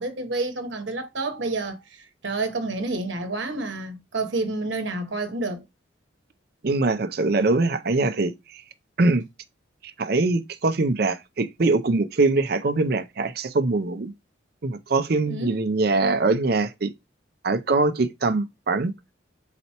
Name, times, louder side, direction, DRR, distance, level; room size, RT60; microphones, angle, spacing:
voice 1, 0.0-5.6 15.3-15.7, right 2 dB, 70° right, 1.0 m, -29 dB
voice 2, 6.6-8.3 9.0-9.2 10.0-14.1 14.6-16.9 17.4-18.9, right 3 dB, 50° right, 0.5 m, -22 dB
4.4 x 4.1 x 2.9 m
head